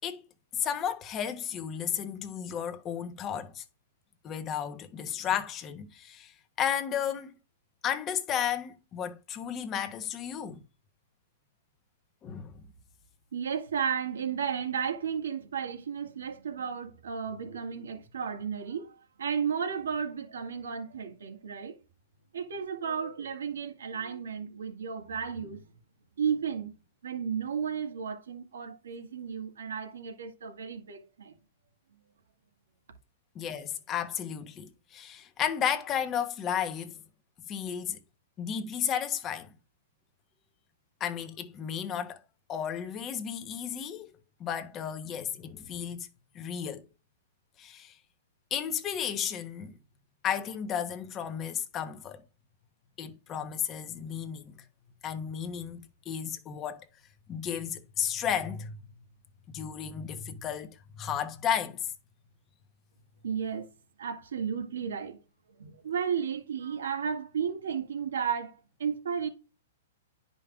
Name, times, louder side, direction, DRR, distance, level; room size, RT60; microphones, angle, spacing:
voice 1, 0.5-3.6 4.2-7.3 7.8-10.6 12.2-12.6 33.3-37.0 37.5-38.0 38.4-39.5 41.0-42.2 42.5-44.1 44.4-46.1 46.3-46.9 47.6-47.9 48.5-49.8 50.2-52.2 53.0-54.5 55.0-55.8 56.1-56.9 57.3-58.8 59.5-61.9, left 8 dB, 25° left, 1.0 m, -33 dB
voice 2, 13.3-21.8 22.3-25.7 26.2-26.7 27.0-31.3 63.2-63.7 64.0-65.2 65.6-68.5 68.8-69.3, right 7 dB, 80° right, 1.8 m, -33 dB
10.5 x 5.3 x 2.4 m
hypercardioid pair, 135°, 0 cm